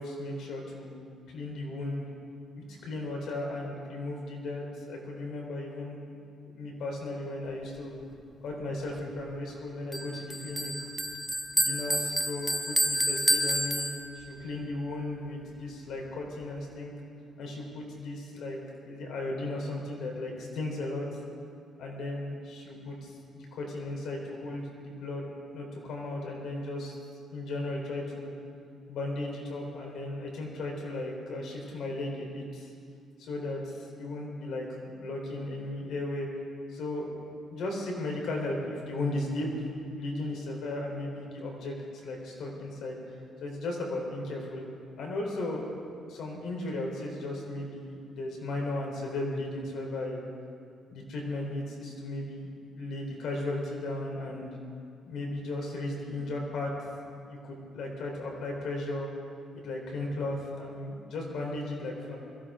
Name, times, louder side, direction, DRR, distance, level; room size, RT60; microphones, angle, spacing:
voice 1, 0.0-2.1 2.5-6.0 6.4-8.0 8.4-10.7 11.5-13.9 14.1-16.9 17.4-18.6 18.8-21.1 21.8-25.2 25.5-26.9 27.3-28.4 28.9-32.7 33.2-36.3 36.7-37.1 37.5-39.5 39.8-43.0 43.4-44.6 45.0-45.8 46.1-50.2 50.9-54.6 55.1-56.7 57.3-59.1 59.5-62.2, left 2 dB, 70° left, 0 dB, 3.9 m, -36 dB
Bell, 9.9-14.4, equal, ahead, 0.9 m, -29 dB
21.5 x 15.5 x 3.8 m, 2.4 s
cardioid pair, 115°, 0 cm